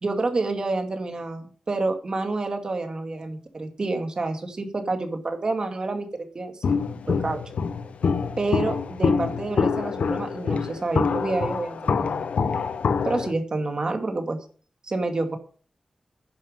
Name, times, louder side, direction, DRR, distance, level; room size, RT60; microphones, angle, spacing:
voice 1, 0.0-6.5 7.1-7.4 8.4-12.3 13.0-14.4 14.8-15.4, right 3 dB, 35° right, 5 dB, 2.3 m, -28 dB
Walk footsteps, 6.6-13.3, left 5 dB, 90° left, 0.8 m, -25 dB
10.5 x 10.5 x 5.2 m, 0.42 s
wide cardioid pair, 165°, 2 cm